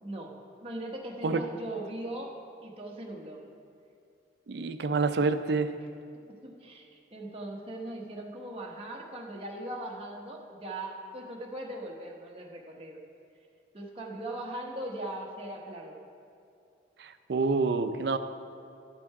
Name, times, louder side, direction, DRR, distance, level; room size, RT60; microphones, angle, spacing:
voice 1, 0.0-0.4 0.6-2.3 2.6-3.4 6.1-13.0 13.7-16.0, right 1 dB, 30° right, -1 dB, 0.9 m, -39 dB
voice 2, 4.5-5.7 17.0-18.2, right 4 dB, 65° right, 10 dB, 0.4 m, -27 dB
12.0 x 6.0 x 4.7 m, 2.5 s
head